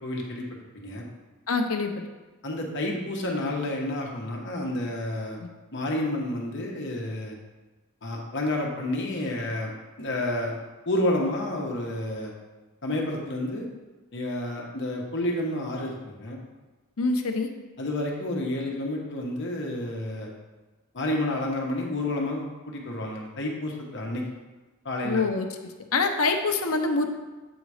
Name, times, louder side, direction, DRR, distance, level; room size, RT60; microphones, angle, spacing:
voice 1, 0.0-0.5 0.7-1.1 2.4-5.4 5.7-7.4 8.0-9.7 10.0-10.6 10.9-12.3 12.8-13.7 14.1-16.4 17.8-20.3 20.9-24.2 24.8-25.2, left 1 dB, 60° left, -1 dB, 1.2 m, -30 dB
voice 2, 1.5-1.9 5.4-5.5 17.0-17.5 25.0-25.5 25.9-27.1, left 3 dB, 85° left, 5 dB, 0.8 m, -25 dB
8.3 x 4.0 x 4.9 m, 1.2 s
head